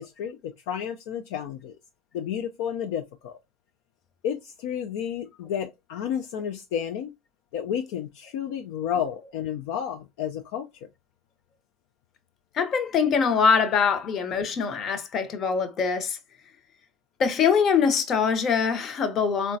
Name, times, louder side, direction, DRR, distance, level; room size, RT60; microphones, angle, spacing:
voice 1, 0.0-1.8 2.1-3.4 4.2-7.1 7.5-10.7, left 9 dB, 70° left, 0.3 m, -31 dB
voice 2, 12.5-16.2 17.2-19.6, left 6 dB, 45° left, 0.7 m, -23 dB
3.7 x 2.2 x 2.6 m
hypercardioid pair, 75°, 0 cm